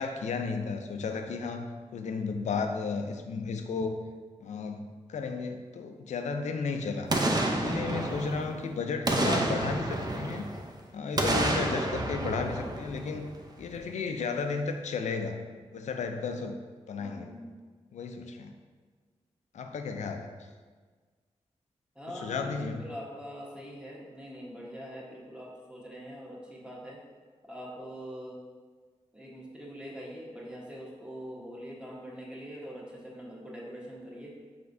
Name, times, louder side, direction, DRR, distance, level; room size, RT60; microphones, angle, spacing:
voice 1, 0.0-4.0 4.4-7.1 7.5-10.5 10.9-13.3 13.6-15.4 15.7-16.6 16.9-17.3 17.9-18.5 19.5-20.3 22.1-22.8, left 4 dB, 80° left, 6 dB, 0.4 m, -33 dB
voice 2, 2.4-2.8 8.5-8.9 17.0-17.6 21.9-27.0 27.5-28.4 29.1-34.4, equal, 10° right, -4 dB, 1.1 m, -43 dB
Boom, 7.1-8.6 9.1-10.7 11.2-13.4 13.8-13.9, right 2 dB, 35° right, 0.5 m, -29 dB
4.8 x 3.4 x 2.6 m, 1.5 s
cardioid pair, 45°, 12 cm